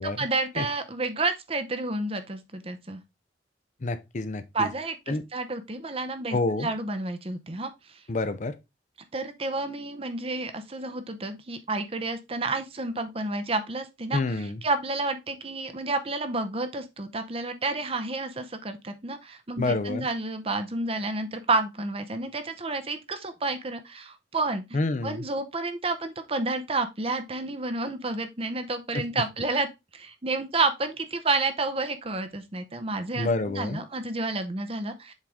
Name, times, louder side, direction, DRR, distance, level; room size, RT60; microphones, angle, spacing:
voice 1, 0.0-3.0 4.5-7.7 9.1-35.1, right 3 dB, 30° right, 0.8 m, -30 dB
voice 2, 3.8-4.7 5.1-5.2 6.3-6.7 8.1-8.5 14.1-14.6 19.6-20.1 24.7-25.3 28.9-29.0 33.2-33.8, left 2 dB, 45° left, 0.6 m, -28 dB
7.3 x 3.8 x 3.5 m
head